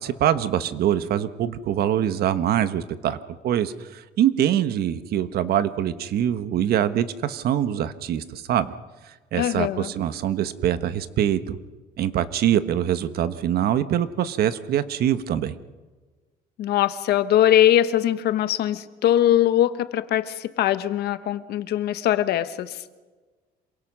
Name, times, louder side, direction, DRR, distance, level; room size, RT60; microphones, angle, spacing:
voice 1, 0.0-3.2 3.4-8.7 9.3-11.6 12.0-15.6, right 10 dB, 65° right, 12 dB, 1.3 m, -24 dB
voice 2, 9.3-9.9 16.6-22.8, left 12 dB, 70° left, 12 dB, 1.3 m, -21 dB
27.0 x 23.0 x 6.3 m, 1.3 s
cardioid pair, 110°, 17 cm